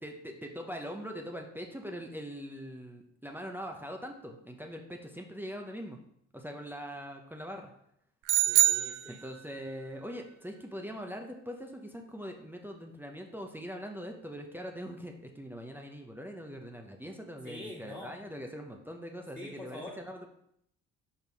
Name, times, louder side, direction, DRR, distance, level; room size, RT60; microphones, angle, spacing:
voice 1, 0.0-6.0 6.3-7.7 9.1-20.3, equal, 5° right, 2 dB, 0.8 m, -42 dB
sound 1, 8.3-9.7, right 14 dB, 85° right, 0.5 m, -26 dB
voice 2, 8.5-9.2 17.4-18.1 19.4-20.0, left 1 dB, 10° left, -8 dB, 2.1 m, -44 dB
5.3 x 4.7 x 5.2 m, 0.73 s
cardioid pair, 90°, 30 cm